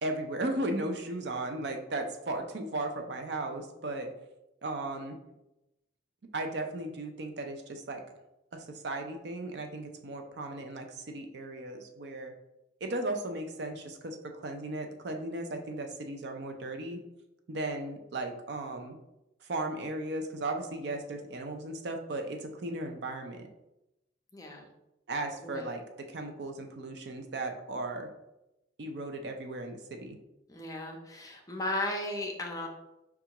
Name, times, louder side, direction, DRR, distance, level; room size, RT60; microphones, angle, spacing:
voice 1, 0.0-4.1 4.6-5.2 6.3-8.0 8.5-12.3 12.8-17.0 17.5-19.0 19.4-23.5 25.1-28.1 28.8-30.2, right 2 dB, 65° right, 4 dB, 0.5 m, -36 dB
voice 2, 24.3-24.7 25.4-25.7 30.5-32.7, left 1 dB, 20° left, 0 dB, 0.5 m, -35 dB
5.4 x 2.4 x 2.9 m, 0.92 s
head